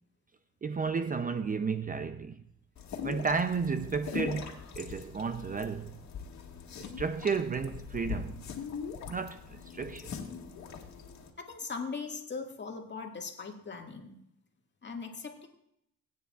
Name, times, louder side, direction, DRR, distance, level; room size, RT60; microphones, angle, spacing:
voice 1, 0.6-2.4 3.0-6.0 6.8-8.4 9.1-10.2, right 5 dB, 30° right, 0.5 m, -33 dB
sound 1, 2.8-11.3, left 6 dB, 65° left, 2.0 m, -41 dB
voice 2, 11.4-14.2 14.8-15.5, left 4 dB, 35° left, 1.8 m, -40 dB
20.0 x 9.4 x 2.4 m
cardioid pair, 90°, 30 cm